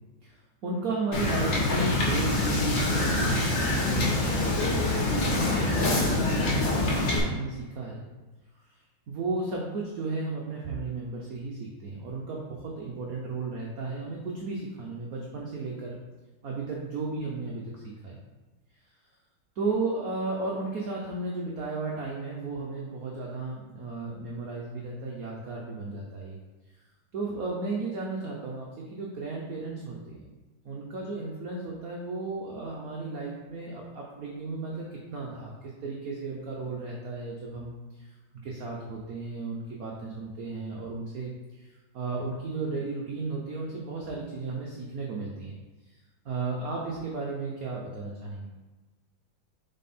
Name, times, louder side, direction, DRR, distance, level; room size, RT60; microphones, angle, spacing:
voice 1, 0.2-8.0 9.1-16.0 16.4-18.2 19.5-26.4 27.1-30.3 30.6-38.1 38.4-41.7 41.9-45.6 46.2-48.5, right 3 dB, 60° right, -2 dB, 1.0 m, -34 dB
Wind / Boat Water vehicle, 1.1-7.2, left 2 dB, 65° left, 2.0 m, -25 dB
7.2 x 4.1 x 4.3 m, 1.2 s
omnidirectional pair, 2.3 m